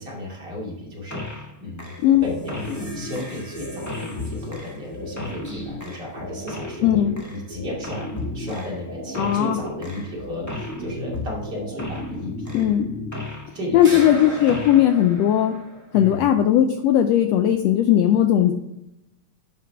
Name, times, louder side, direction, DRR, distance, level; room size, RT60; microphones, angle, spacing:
voice 1, 0.0-1.9 2.2-8.1 8.3-12.5 13.3-14.0 15.9-16.3, left 1 dB, 35° right, -4 dB, 2.9 m, -34 dB
sound 1, 1.1-1.5 1.8-13.5 13.8-16.0, left 1 dB, 10° left, 0.8 m, -33 dB
voice 2, 6.8-7.1 9.2-9.6 12.5-12.9 13.7-15.5 15.9-18.5, left 11 dB, 80° left, 7 dB, 1.5 m, -18 dB
10.5 x 6.0 x 3.4 m, 0.87 s
omnidirectional pair, 3.4 m